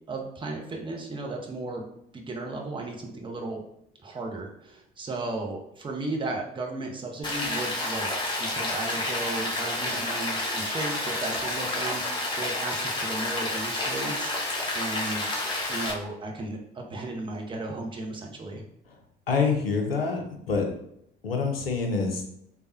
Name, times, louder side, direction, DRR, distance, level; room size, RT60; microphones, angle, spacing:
voice 1, 0.1-1.9 2.1-3.6 4.0-15.3 15.7-18.6, right 2 dB, 15° right, 1 dB, 0.7 m, -35 dB
Rain, 7.2-15.9, left 2 dB, 15° left, 0.9 m, -30 dB
voice 2, 19.3-20.7 21.2-22.2, left 4 dB, 85° left, 2 dB, 0.5 m, -26 dB
3.3 x 2.2 x 2.6 m, 0.75 s
figure-of-eight pair, 55°, 29 cm